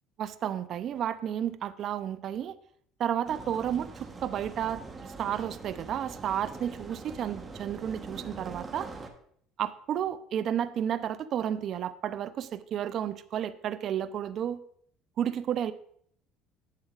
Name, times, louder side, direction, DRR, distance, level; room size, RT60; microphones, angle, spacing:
voice 1, 0.2-2.6 3.0-4.8 5.2-8.9 9.6-14.6 15.2-15.7, right 9 dB, 50° right, 13 dB, 0.5 m, -32 dB
sound 1, 3.3-9.1, right 3 dB, 20° right, 1.0 m, -43 dB
10.5 x 8.0 x 2.4 m, 0.65 s
cardioid pair, 115°, 0 cm